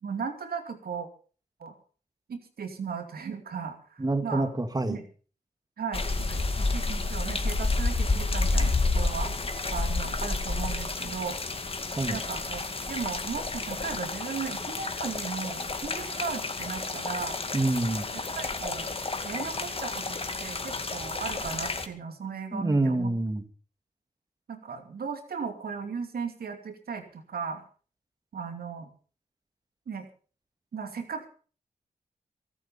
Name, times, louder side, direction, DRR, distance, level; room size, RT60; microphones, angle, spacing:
voice 1, 0.0-1.1 1.6-1.8 2.3-4.5 4.9-5.0 5.8-9.3 9.7-11.4 12.1-12.6 12.9-17.4 18.1-18.9 19.2-23.1 24.5-27.6 28.3-28.9 29.9-30.1 30.7-31.3, right 6 dB, 80° right, 6 dB, 2.6 m, -36 dB
voice 2, 4.0-5.0 12.0-12.2 17.5-18.1 22.5-23.4, right 2 dB, 25° right, 8 dB, 2.2 m, -26 dB
sound 1, 5.9-21.9, left 3 dB, 35° left, 2.2 m, -30 dB
24.0 x 8.7 x 5.5 m, 0.40 s
cardioid pair, 65°, 15 cm